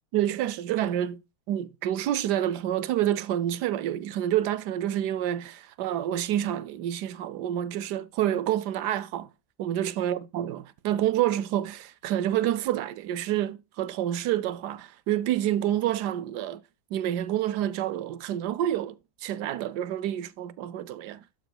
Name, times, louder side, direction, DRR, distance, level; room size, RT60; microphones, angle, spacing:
voice 1, 0.1-1.2 1.5-9.3 9.6-16.6 16.9-19.0 19.2-21.2, right 12 dB, 75° right, 1.1 m, -28 dB
12.0 x 6.9 x 2.2 m
omnidirectional pair, 1.9 m